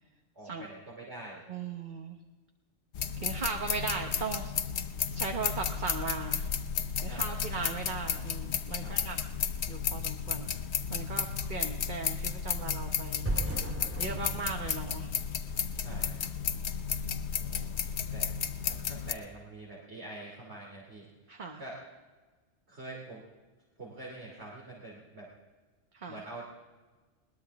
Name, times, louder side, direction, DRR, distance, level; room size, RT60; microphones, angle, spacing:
voice 1, 0.3-1.4 7.0-7.5 8.8-9.2 15.8-16.2 17.4-17.7 18.1-18.3 18.6-21.1 21.6-21.8 22.7-23.2 23.8-25.3 26.1-26.4, right 2 dB, 60° right, -3 dB, 3.2 m, -45 dB
voice 2, 1.5-2.2 3.2-4.6 5.1-6.5 7.0-9.2 9.7-10.5 10.9-13.2 14.0-15.1 15.9-16.3 21.3-21.6 25.9-26.2, right 4 dB, 40° right, 3 dB, 1.2 m, -38 dB
sound 1, 2.9-19.1, left 7 dB, 60° left, 1.0 m, -33 dB
sound 2, 13.2-16.2, right 2 dB, 15° right, 0.8 m, -37 dB
21.0 x 19.5 x 3.5 m, 1.3 s
omnidirectional pair, 1.3 m